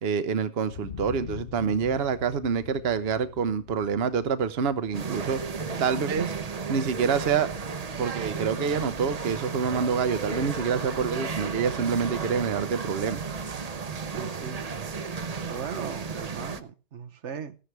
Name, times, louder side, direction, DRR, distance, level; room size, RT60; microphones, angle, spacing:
voice 1, 0.0-5.4 5.8-6.4 6.7-7.5 8.0-13.2, right 6 dB, 65° right, 1.1 m, -27 dB
sound 1, 0.7-8.6 9.0-9.1, left 9 dB, 55° left, 1.0 m, -45 dB
sound 2, 4.9-16.6, right 5 dB, 40° right, 0.8 m, -34 dB
voice 2, 14.1-14.6 15.4-17.6, right 7 dB, 85° right, 1.3 m, -38 dB
14.5 x 11.5 x 3.3 m
omnidirectional pair, 1.2 m